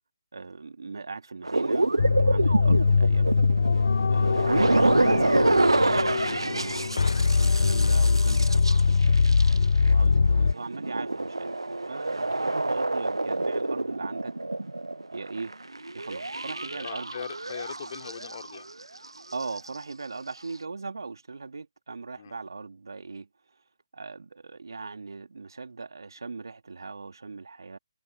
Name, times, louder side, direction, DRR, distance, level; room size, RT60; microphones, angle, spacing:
voice 1, 0.3-3.4 4.1-9.2 9.8-11.5 11.9-14.3 15.1-15.5 15.9-17.1 19.3-23.3 23.9-27.8, right 4 dB, 60° right, 2.5 m, -39 dB
sound 1, 1.4-9.9 10.4-19.0 19.3-19.7, right 2 dB, 80° right, 0.3 m, -27 dB
sound 2, 2.0-10.5, left 4 dB, 55° left, 0.5 m, -22 dB
voice 2, 16.8-18.7 22.2-22.3, left 8 dB, 40° left, 4.9 m, -40 dB
figure-of-eight pair, 145°, 2 cm